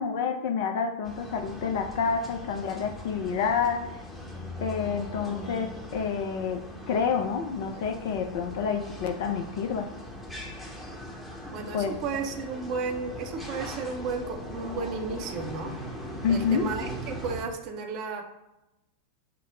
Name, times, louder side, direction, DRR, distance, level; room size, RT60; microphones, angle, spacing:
voice 1, 0.0-3.9 4.6-9.9 11.7-11.9 16.2-16.7, left 6 dB, 50° left, 6 dB, 0.4 m, -28 dB
sound 1, 1.0-17.4, left 1 dB, 10° left, 0.8 m, -40 dB
voice 2, 11.5-15.7 16.3-18.2, right 4 dB, 40° right, 5 dB, 0.6 m, -33 dB
5.7 x 2.1 x 3.6 m, 0.93 s
figure-of-eight pair, 90°, 0 cm